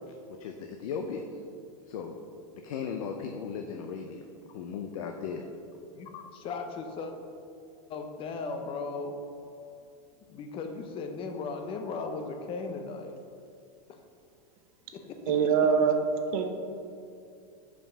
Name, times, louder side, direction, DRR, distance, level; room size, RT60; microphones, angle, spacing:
voice 1, 0.3-1.4 1.9-2.2 2.5-4.2 4.5-5.4, left 6 dB, 75° left, 4 dB, 0.6 m, -36 dB
voice 2, 6.0-7.1 7.9-9.2 10.3-13.2 13.9-14.0 14.9-15.7, left 4 dB, 30° left, 5 dB, 0.7 m, -37 dB
voice 3, 15.3-16.0 16.3-16.5, right 6 dB, 70° right, 5 dB, 0.9 m, -23 dB
5.5 x 5.1 x 5.9 m, 2.4 s
supercardioid pair, 140°, 18 cm